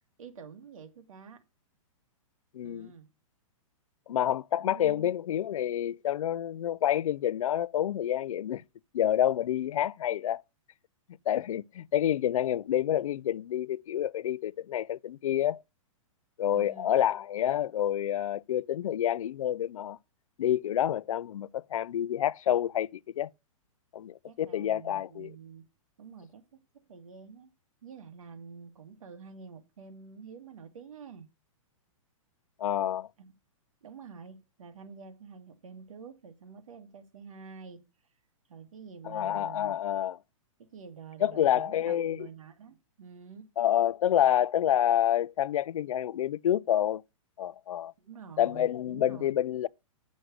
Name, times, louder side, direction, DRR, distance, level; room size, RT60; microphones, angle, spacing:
voice 1, 0.2-1.4 2.6-3.1 4.6-5.1 16.5-17.0 24.2-25.7 26.0-26.4 26.9-27.5 27.8-31.3 33.2-33.3 33.8-37.8 38.5-39.8 40.6-43.5 48.0-49.4, right 6 dB, 75° right, 2.0 m, -48 dB
voice 2, 2.5-2.9 4.1-8.6 8.9-10.4 11.3-15.6 16.4-20.0 20.4-22.9 23.2-23.3 23.9-25.3 32.6-33.1 39.0-40.2 41.2-42.3 43.6-47.0 47.4-47.9 48.4-49.7, left 11 dB, 80° left, 0.4 m, -28 dB
8.0 x 6.3 x 6.2 m
hypercardioid pair, 170°, 17 cm